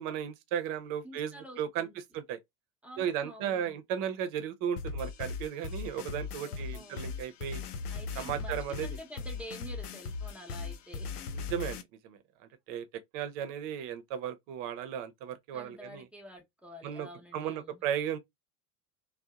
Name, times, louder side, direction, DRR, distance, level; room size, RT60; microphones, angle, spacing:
voice 1, 0.0-1.9 2.1-2.4 3.0-7.6 8.2-9.0 11.3-11.8 12.0-12.2 12.7-12.9 13.1-16.0 16.8-17.1 17.3-18.2, right 9 dB, 45° right, 0.6 m, -35 dB
voice 2, 1.0-2.0 2.8-3.8 6.4-7.1 7.9-11.1 15.5-17.8, equal, 5° right, 0.7 m, -48 dB
sound 1, 4.8-11.8, left 4 dB, 75° left, 0.6 m, -38 dB
2.7 x 2.1 x 2.3 m
figure-of-eight pair, 75°, 46 cm